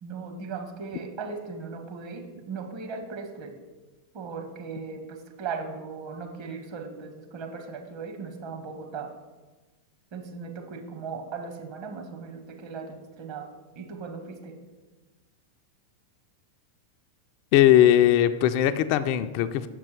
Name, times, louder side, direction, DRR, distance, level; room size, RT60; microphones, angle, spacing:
voice 1, 0.0-3.5 4.1-9.1 10.1-13.5 13.7-14.5, right 5 dB, 45° right, 3 dB, 1.2 m, -38 dB
voice 2, 17.5-19.7, left 11 dB, 45° left, 10 dB, 0.3 m, -19 dB
7.3 x 5.4 x 4.8 m, 1.2 s
figure-of-eight pair, 90°, 0 cm